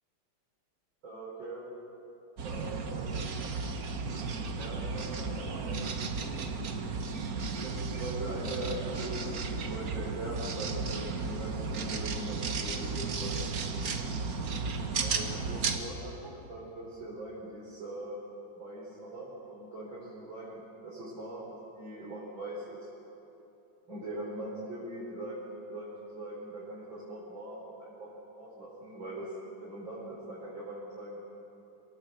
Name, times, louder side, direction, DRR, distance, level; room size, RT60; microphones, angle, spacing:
voice 1, 1.0-1.6 2.4-3.3 4.6-5.8 7.6-13.5 15.0-18.2 18.5-21.4 21.7-22.9 23.9-25.4 25.7-28.1 28.4-29.3 29.6-31.2, right 1 dB, 70° right, -7 dB, 5.3 m, -41 dB
sound 1, 2.4-15.8, right 4 dB, 50° right, 1.6 m, -34 dB
27.5 x 17.0 x 8.0 m, 3.0 s
omnidirectional pair, 2.2 m